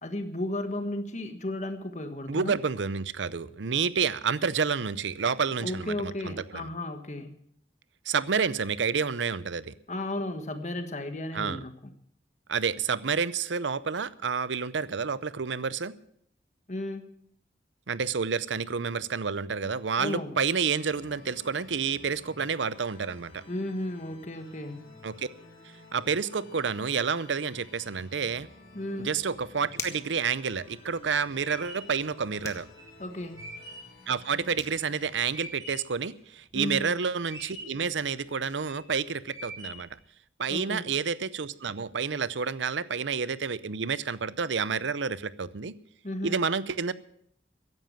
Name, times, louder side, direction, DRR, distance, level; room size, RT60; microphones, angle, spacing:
voice 1, 0.0-2.5 5.6-7.4 9.9-11.9 16.7-17.1 20.0-20.4 23.5-24.9 28.7-29.1 33.0-33.5 36.5-36.9 40.5-40.9 46.0-46.4, left 1 dB, 40° left, 8 dB, 1.4 m, -34 dB
voice 2, 2.3-6.7 8.1-9.7 11.3-11.6 12.5-15.9 17.9-23.4 25.0-25.3 25.9-28.5 29.0-32.7 34.1-39.9 40.4-45.7 46.2-46.9, right 5 dB, 85° right, 17 dB, 0.7 m, -29 dB
sound 1, 20.6-35.4, left 2 dB, 80° left, 3.6 m, -53 dB
sound 2, 29.8-30.2 32.4-32.7 34.2-34.3 34.6-34.8, left 3 dB, 15° left, 1.5 m, -38 dB
sound 3, 30.8-36.0 36.4-37.0 37.2-37.9 38.4-38.9 39.3-40.0, right 1 dB, 20° right, 5.2 m, -44 dB
15.0 x 11.0 x 7.3 m, 0.67 s
head